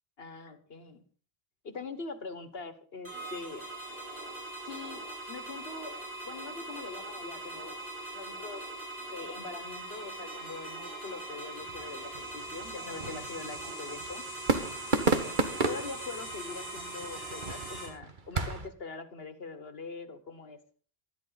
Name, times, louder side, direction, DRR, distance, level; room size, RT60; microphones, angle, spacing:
voice 1, 0.2-1.0 1.6-3.6 4.6-7.8 8.1-8.7 9.0-14.2 15.7-20.6, left 4 dB, 70° left, 11 dB, 1.7 m, -43 dB
sound 1, 3.0-17.9, right 2 dB, 75° right, 6.8 m, -41 dB
sound 2, 11.6-18.7, right 3 dB, 50° right, 1.6 m, -34 dB
19.5 x 13.5 x 4.0 m, 0.42 s
omnidirectional pair, 1.0 m